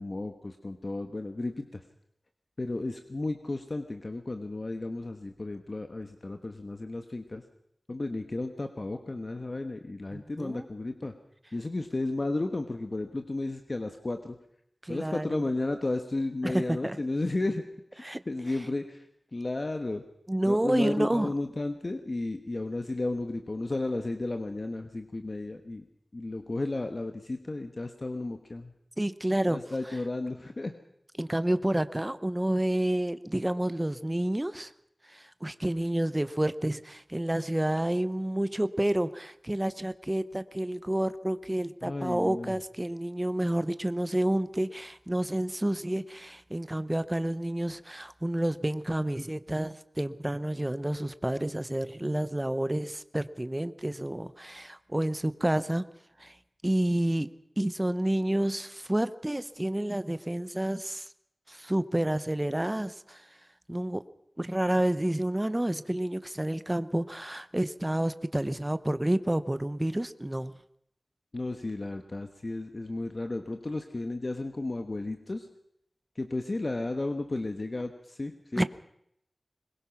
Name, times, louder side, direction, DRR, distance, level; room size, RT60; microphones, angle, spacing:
voice 1, 0.0-1.8 2.6-7.4 7.9-11.1 11.5-14.4 14.9-17.6 17.9-19.0 19.3-20.0 20.4-25.9 26.1-28.7 29.5-30.7 41.8-42.6 71.3-75.5 76.1-78.6, left 2 dB, 45° left, 6 dB, 1.3 m, -33 dB
voice 2, 10.1-10.7 14.8-15.4 16.4-17.0 18.0-18.2 20.3-21.3 29.0-29.6 31.2-34.7 35.0-55.9 56.2-56.4 56.6-61.1 61.5-63.4 63.7-64.0 64.4-70.6 78.6-78.7, right 1 dB, 20° right, 13 dB, 0.9 m, -29 dB
21.5 x 21.0 x 6.0 m, 0.75 s
wide cardioid pair, 75°, 0 cm